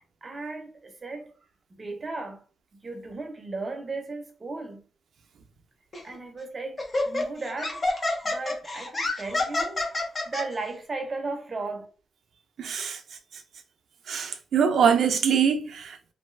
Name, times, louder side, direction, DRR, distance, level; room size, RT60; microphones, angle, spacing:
voice 1, 0.0-1.3 1.7-2.4 2.8-4.8 6.0-7.8 8.2-11.9, right 3 dB, 30° right, 0.7 m, -36 dB
Laughter, 5.9-6.1 6.8-10.4, left 2 dB, 30° left, 0.6 m, -28 dB
voice 2, 12.6-13.0 14.1-16.1, right 7 dB, 65° right, 0.4 m, -23 dB
2.6 x 2.3 x 3.2 m
wide cardioid pair, 145°, 0 cm